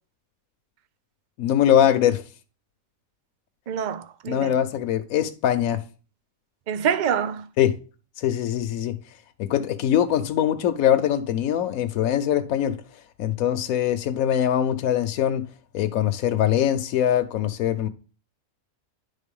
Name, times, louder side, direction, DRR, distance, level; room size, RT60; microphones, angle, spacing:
voice 1, 1.4-2.2 4.3-5.8 7.6-7.8 8.2-9.0 9.4-12.8 13.2-15.5 15.7-17.9, left 10 dB, 75° left, 1.1 m, -22 dB
voice 2, 3.7-4.5 6.7-7.5, right 8 dB, 60° right, 0.5 m, -26 dB
10.5 x 3.8 x 5.3 m
omnidirectional pair, 1.5 m